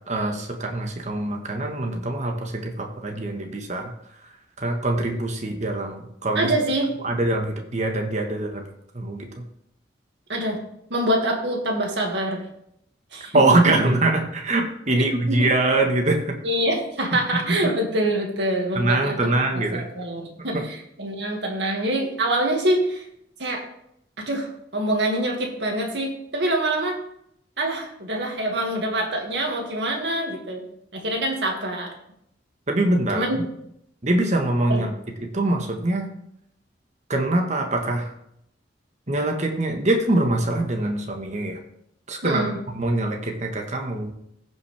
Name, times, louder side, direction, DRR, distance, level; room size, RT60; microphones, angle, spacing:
voice 1, 0.0-3.9 4.6-6.5 7.0-8.7 8.9-9.4 13.3-16.4 17.5-17.6 18.7-19.9 20.5-20.6 32.7-33.4 34.0-34.9 35.2-36.1 37.1-38.1 39.1-41.6 42.1-44.1, right 2 dB, 40° right, 3 dB, 1.4 m, -23 dB
voice 2, 6.4-6.9 10.3-10.6 10.9-12.5 13.1-13.7 15.0-15.5 16.4-23.1 23.4-23.6 24.2-27.0 27.6-30.6 30.9-31.9 33.1-33.4 34.7-34.9 42.2-42.6, right 1 dB, 75° right, 1 dB, 2.2 m, -25 dB
15.0 x 5.7 x 3.5 m, 0.75 s
head